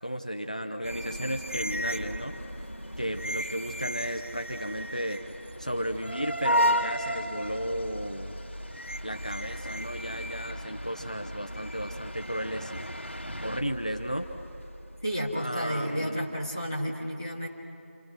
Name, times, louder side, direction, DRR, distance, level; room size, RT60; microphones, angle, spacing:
voice 1, 0.0-2.3 3.0-5.2 5.6-8.4 9.0-12.8 13.4-14.3 15.3-16.2, equal, 35° left, 5 dB, 0.9 m, -34 dB
sound 1, 0.8-15.7, equal, 70° left, 1.8 m, -35 dB
sound 2, 1.9-13.6, right 1 dB, 50° left, 2.2 m, -40 dB
voice 2, 15.0-17.5, equal, 15° right, -5 dB, 1.8 m, -31 dB
29.5 x 26.5 x 6.3 m, 2.6 s
figure-of-eight pair, 180°, 7 cm